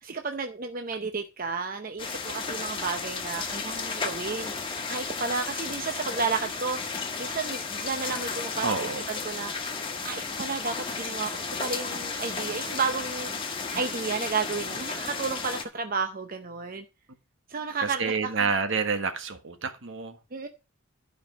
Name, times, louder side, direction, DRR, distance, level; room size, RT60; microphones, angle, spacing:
voice 1, 0.0-9.5 10.0-13.3 13.7-16.8 17.5-18.5 20.3-20.5, right 4 dB, 40° right, 0.7 m, -32 dB
sound 1, 2.0-15.6, left 4 dB, 25° left, 1.5 m, -33 dB
voice 2, 8.6-9.1 13.7-13.8 17.8-20.2, right 5 dB, 60° right, 1.3 m, -28 dB
12.0 x 5.3 x 5.0 m
head